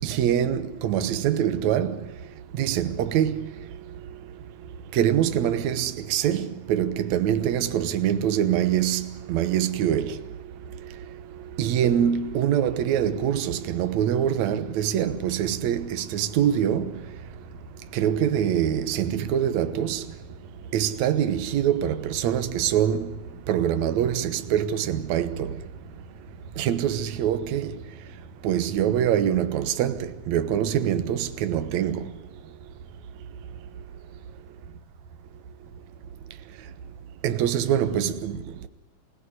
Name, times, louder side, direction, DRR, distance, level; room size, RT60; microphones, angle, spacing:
voice 1, 0.0-2.0 2.6-3.5 4.9-10.2 11.6-16.9 17.9-20.0 20.7-23.1 23.5-25.5 26.6-27.7 28.4-32.1 37.2-38.4, right 10 dB, 60° right, 2.2 m, -24 dB
sound 1, 16.1-30.8, right 1 dB, 45° right, 4.8 m, -48 dB
27.5 x 17.0 x 9.6 m
omnidirectional pair, 4.2 m